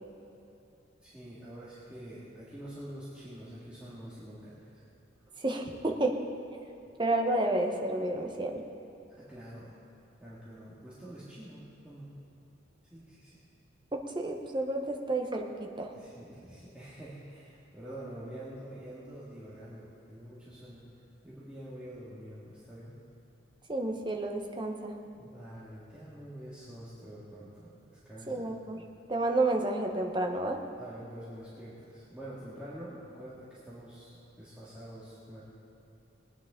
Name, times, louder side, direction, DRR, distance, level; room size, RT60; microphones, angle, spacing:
voice 1, 1.0-4.8 9.1-9.8 10.2-12.1 12.9-13.4 15.9-20.8 21.2-23.0 25.2-28.5 30.8-35.4, right 1 dB, 5° right, -10 dB, 2.0 m, -46 dB
voice 2, 5.4-6.2 7.0-8.6 13.9-15.9 23.7-24.9 28.3-28.8 29.1-30.6, right 2 dB, 25° right, 2 dB, 1.0 m, -30 dB
21.5 x 9.6 x 3.7 m, 2.9 s
head